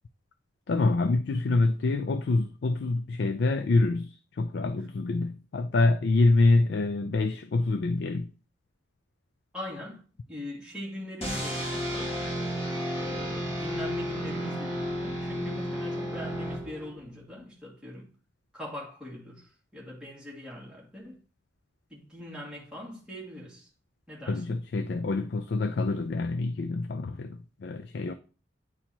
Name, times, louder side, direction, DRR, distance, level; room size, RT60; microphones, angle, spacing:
voice 1, 0.7-8.3 24.3-28.1, left 3 dB, 60° left, 0.4 m, -26 dB
voice 2, 9.5-12.1 13.0-18.1 18.5-21.2 21.9-23.7 24.1-24.6, left 1 dB, 5° right, 2.1 m, -42 dB
sound 1, 11.2-17.1, equal, 30° left, 1.8 m, -32 dB
9.6 x 4.4 x 2.9 m
head